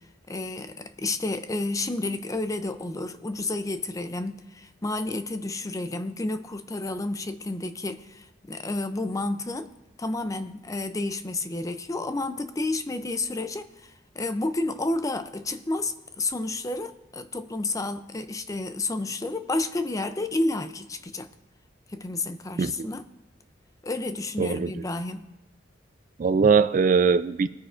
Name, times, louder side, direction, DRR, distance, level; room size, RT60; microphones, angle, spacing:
voice 1, 0.3-9.7 10.0-21.3 21.9-23.0 23.8-25.3, left 2 dB, 20° left, 0.5 m, -30 dB
voice 2, 24.4-24.8 26.2-27.5, right 5 dB, 45° right, 0.3 m, -21 dB
21.5 x 9.1 x 2.5 m
head